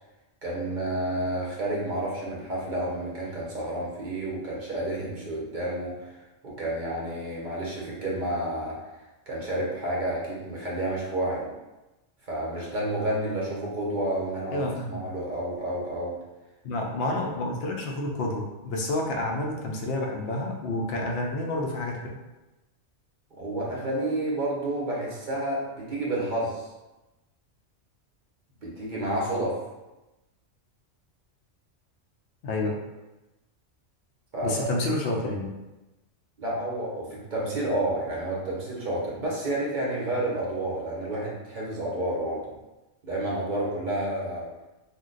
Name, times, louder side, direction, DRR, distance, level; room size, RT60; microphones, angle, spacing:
voice 1, 0.4-8.9 9.3-11.5 12.3-16.2 23.3-26.7 28.6-29.6 34.3-34.7 36.4-42.5 43.0-44.5, right 1 dB, 50° right, -5 dB, 0.7 m, -30 dB
voice 2, 14.5-15.0 16.6-22.2 32.4-32.8 34.4-35.5, left 2 dB, 65° left, 0 dB, 0.7 m, -29 dB
2.5 x 2.1 x 3.7 m, 1.0 s
omnidirectional pair, 1.3 m